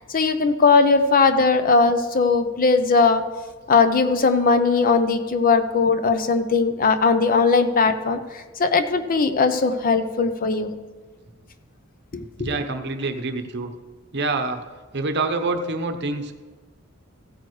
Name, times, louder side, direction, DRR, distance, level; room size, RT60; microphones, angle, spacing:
voice 1, 0.1-3.2 3.7-10.7 12.1-12.5, left 4 dB, 45° left, 9 dB, 0.6 m, -19 dB
voice 2, 12.4-13.7 14.1-14.6 14.9-16.3, right 3 dB, 55° right, 7 dB, 0.9 m, -26 dB
15.5 x 9.0 x 3.2 m, 1.4 s
head